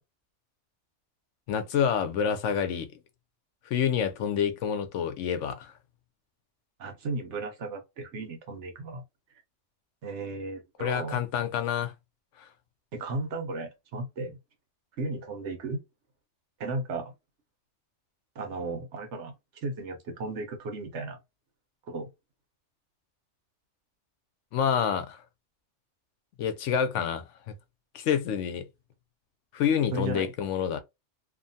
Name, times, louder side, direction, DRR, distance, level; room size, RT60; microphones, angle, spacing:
voice 1, 1.5-2.9 3.7-5.7 10.8-11.9 12.4-12.5 24.5-25.2 26.4-27.5 27.9-28.7 29.5-30.8, left 8 dB, 85° left, 1.0 m, -28 dB
voice 2, 6.8-9.0 10.0-11.2 12.9-14.4 15.0-15.8 16.6-17.1 18.4-19.3 19.6-21.2 21.9-22.1 29.9-30.3, right 2 dB, 80° right, 1.1 m, -35 dB
2.7 x 2.2 x 2.6 m
omnidirectional pair, 1.2 m